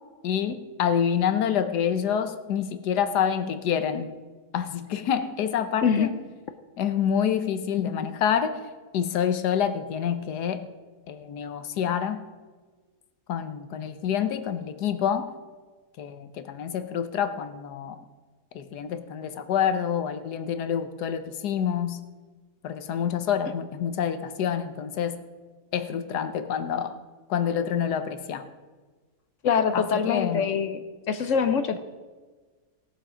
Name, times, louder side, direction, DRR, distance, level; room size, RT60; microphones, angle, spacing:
voice 1, 0.2-4.1 4.5-6.2 6.8-8.7 8.9-10.7 11.1-12.2 13.3-15.3 16.0-18.0 18.5-22.1 22.6-25.2 25.7-27.0 27.3-28.5 29.7-30.5, left 8 dB, 80° left, 10 dB, 1.4 m, -27 dB
voice 2, 29.4-30.8 31.1-31.8, left 6 dB, 60° left, 10 dB, 0.9 m, -24 dB
17.5 x 7.2 x 5.0 m, 1.4 s
omnidirectional pair, 1.7 m